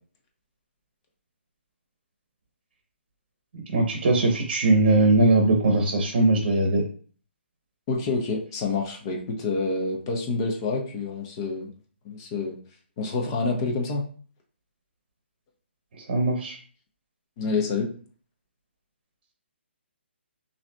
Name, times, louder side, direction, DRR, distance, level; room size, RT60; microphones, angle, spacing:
voice 1, 3.7-6.8 15.9-16.6, right 2 dB, 45° right, 2 dB, 0.9 m, -20 dB
voice 2, 7.9-11.7 12.0-12.6 13.0-14.1 17.4-17.9, left 3 dB, 20° left, 1 dB, 0.7 m, -27 dB
5.5 x 2.8 x 2.2 m, 0.44 s
hypercardioid pair, 165°, 7 cm